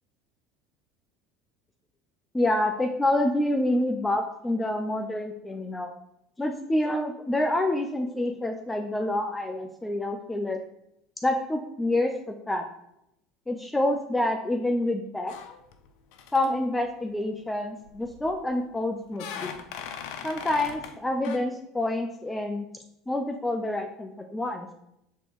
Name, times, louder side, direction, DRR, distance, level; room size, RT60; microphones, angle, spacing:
voice 1, 2.3-5.9 6.4-10.6 11.2-12.7 13.5-15.3 16.3-19.5 20.2-22.7 23.1-24.7, left 1 dB, 10° left, 5 dB, 0.7 m, -27 dB
sound 1, 15.3-15.9 16.1-16.5 17.9-18.4 19.1-21.0 21.2-21.4, left 7 dB, 70° left, 0.7 m, -39 dB
6.8 x 3.9 x 4.7 m, 0.78 s
hypercardioid pair, 85°, 0 cm